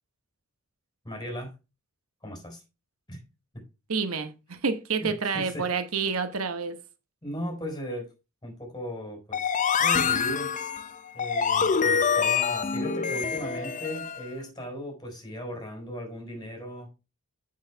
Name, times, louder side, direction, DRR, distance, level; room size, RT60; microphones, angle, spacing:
voice 1, 1.0-1.5 2.2-2.6 3.1-3.2 3.5-3.6 5.0-5.7 7.2-8.1 8.4-10.5 11.1-16.9, equal, 20° left, 4.2 m, -37 dB
voice 2, 3.9-6.8, right 5 dB, 75° right, 1.2 m, -29 dB
sound 1, 9.3-14.2, left 6 dB, 35° left, 0.6 m, -26 dB
8.1 x 6.4 x 4.5 m
head